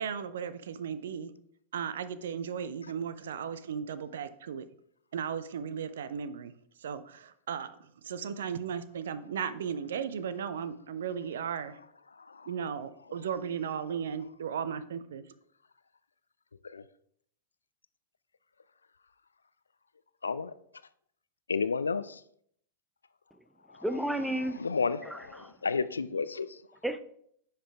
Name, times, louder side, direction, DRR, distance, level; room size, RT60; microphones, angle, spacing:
voice 1, 0.0-1.3 1.7-4.7 5.1-6.5 6.8-11.8 12.5-15.2, right 7 dB, 60° right, 0.6 m, -36 dB
voice 2, 20.2-20.5 21.5-22.2 23.7-23.8 24.6-26.6, left 5 dB, 75° left, 0.4 m, -32 dB
voice 3, 23.7-24.7 25.0-25.6 26.8-27.0, right 1 dB, ahead, 0.6 m, -33 dB
9.9 x 5.8 x 3.4 m
figure-of-eight pair, 90°, 0 cm